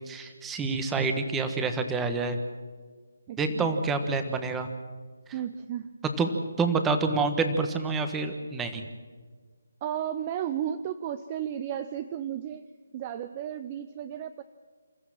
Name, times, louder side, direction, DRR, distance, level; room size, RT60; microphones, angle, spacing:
voice 1, 0.1-2.4 3.4-4.7 6.2-6.3 6.6-8.9, right 4 dB, 10° right, 7 dB, 1.3 m, -27 dB
voice 2, 3.3-3.7 5.3-5.9 9.8-12.7 12.9-14.4, right 10 dB, 25° right, 12 dB, 0.6 m, -34 dB
27.5 x 14.0 x 7.6 m, 1.5 s
figure-of-eight pair, 165°, 0 cm